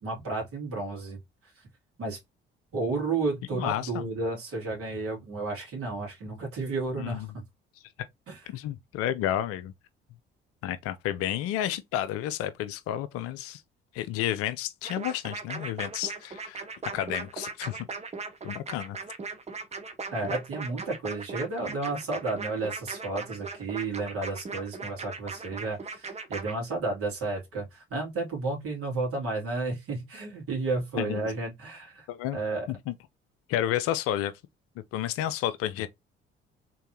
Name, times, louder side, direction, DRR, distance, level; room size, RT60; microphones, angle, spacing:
voice 1, 0.0-1.2 2.0-2.2 2.7-7.4 8.3-8.4 20.1-32.1 32.3-32.7, right 3 dB, 50° right, 2.4 m, -32 dB
voice 2, 3.6-4.1 7.0-7.3 8.5-9.7 10.6-13.6 13.9-16.6 16.9-17.8 18.4-19.0 31.0-31.3 32.1-32.4 32.7-32.9 33.5-34.3 34.9-35.9, left 12 dB, 50° left, 0.5 m, -31 dB
sound 1, 14.8-26.5, right 4 dB, 20° right, 0.8 m, -38 dB
3.7 x 3.3 x 2.8 m
figure-of-eight pair, 45°, 30 cm